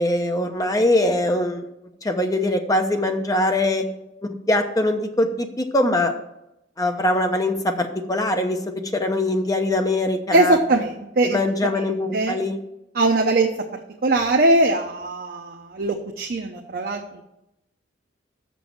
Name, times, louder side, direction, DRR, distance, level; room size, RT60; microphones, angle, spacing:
voice 1, 0.0-1.6 2.0-3.8 4.2-6.1 6.8-8.6 8.9-10.6 11.2-12.6, left 1 dB, 20° left, 5 dB, 0.8 m, -22 dB
voice 2, 10.3-11.7 12.1-12.3 12.9-17.2, right 2 dB, 55° right, 2 dB, 0.7 m, -21 dB
6.4 x 6.2 x 7.1 m, 0.85 s
head